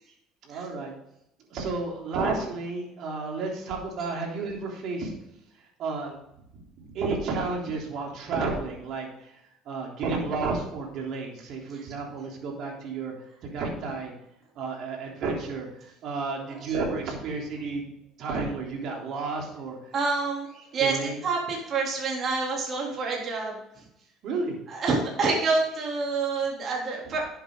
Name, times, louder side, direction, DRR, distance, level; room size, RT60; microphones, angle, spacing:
voice 1, 0.4-0.9 1.5-5.1 5.8-6.2 6.5-13.1 13.4-14.1 14.6-17.9 18.2-19.9 20.8-21.1 24.2-24.6, right 4 dB, 60° right, -1 dB, 3.6 m, -32 dB
voice 2, 19.9-21.0 21.2-23.8 24.7-27.2, right 4 dB, 45° right, -2 dB, 3.3 m, -27 dB
10.5 x 8.0 x 3.9 m, 0.79 s
supercardioid pair, 95°, 0 cm